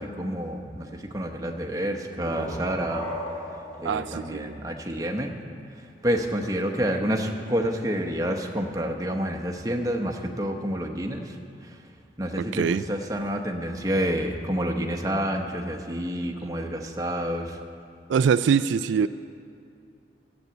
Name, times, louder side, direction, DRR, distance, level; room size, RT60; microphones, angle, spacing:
voice 1, 0.0-3.1 3.8-5.3 6.0-11.4 12.2-17.6, equal, 20° right, 3 dB, 0.9 m, -28 dB
sound 1, 1.9-5.5, left 1 dB, 10° left, 2.1 m, -38 dB
voice 2, 3.8-4.6 12.4-12.8 18.1-19.1, right 6 dB, 85° right, 13 dB, 0.3 m, -23 dB
13.0 x 8.1 x 7.8 m, 2.5 s
head